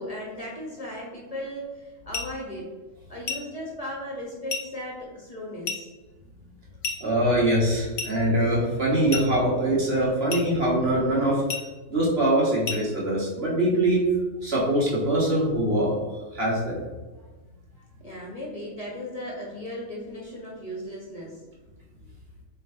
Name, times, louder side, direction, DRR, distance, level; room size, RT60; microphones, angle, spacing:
voice 1, 0.0-2.7 3.1-5.9 18.0-21.4, equal, 30° left, -4 dB, 1.6 m, -36 dB
sound 1, 2.1-2.4 3.3-3.5 4.5-4.7 5.7-5.9 6.8-7.1 8.0-8.2 9.1-9.4 10.3-10.5 11.5-11.7 12.7-12.9, left 5 dB, 70° left, 1.2 m, -32 dB
voice 2, 7.0-11.4 11.9-14.0 14.4-16.1 16.3-16.8, right 1 dB, 50° right, -5 dB, 2.0 m, -23 dB
8.0 x 3.6 x 3.9 m, 1.2 s
omnidirectional pair, 1.3 m